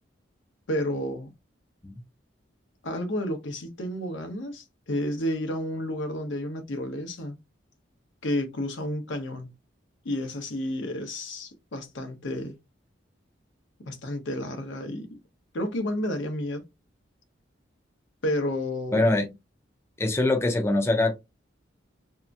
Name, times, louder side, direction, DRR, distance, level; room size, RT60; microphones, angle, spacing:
voice 1, 0.7-1.3 2.8-7.4 8.2-9.6 10.0-12.6 13.9-15.1 15.5-16.6 18.2-19.1, left 1 dB, 80° left, 0.7 m, -31 dB
voice 2, 18.9-19.3 20.0-21.2, left 2 dB, 15° left, 0.4 m, -23 dB
2.8 x 2.4 x 2.3 m
head